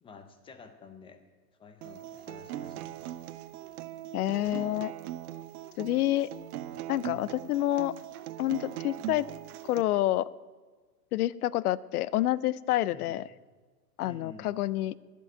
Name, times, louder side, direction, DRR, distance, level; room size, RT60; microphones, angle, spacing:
voice 1, 0.0-1.2 1.6-3.0 12.9-13.2 14.0-14.5, left 5 dB, 10° left, 9 dB, 0.6 m, -50 dB
Acoustic guitar, 1.8-9.8, right 13 dB, 60° right, 0.7 m, -40 dB
voice 2, 4.1-4.9 5.8-6.3 6.9-7.9 8.4-9.3 9.6-10.3 11.1-13.2 14.0-15.0, left 14 dB, 65° left, 20 dB, 0.6 m, -28 dB
10.5 x 7.7 x 8.9 m, 1.4 s
hypercardioid pair, 130°, 50 cm